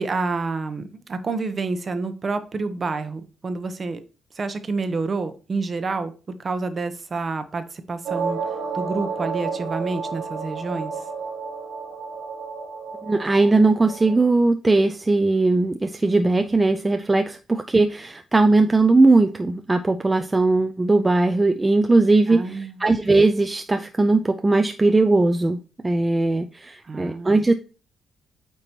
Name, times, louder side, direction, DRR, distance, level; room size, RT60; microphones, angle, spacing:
voice 1, 0.0-4.0 4.3-6.1 6.4-8.4 8.7-10.9 22.3-22.8 26.8-27.5, right 3 dB, 35° right, 10 dB, 0.9 m, -28 dB
sound 1, 8.0-14.3, right 5 dB, 90° right, 1.2 m, -31 dB
voice 2, 13.0-27.5, right 2 dB, 20° right, 8 dB, 0.5 m, -19 dB
8.8 x 3.0 x 4.4 m, 0.36 s
cardioid pair, 90°, 0 cm